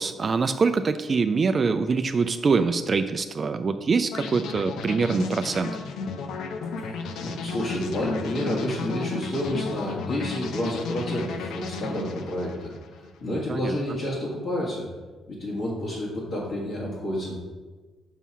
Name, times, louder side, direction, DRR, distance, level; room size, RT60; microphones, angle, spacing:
voice 1, 0.0-5.7 13.5-13.8, right 4 dB, 40° right, 9 dB, 0.4 m, -24 dB
sound 1, 4.1-13.2, left 4 dB, 80° left, 0.7 m, -33 dB
voice 2, 6.8-12.7 13.0-14.9 15.3-17.4, left 1 dB, 60° left, -7 dB, 1.9 m, -30 dB
5.6 x 5.5 x 6.1 m, 1.3 s
cardioid pair, 90°, 0 cm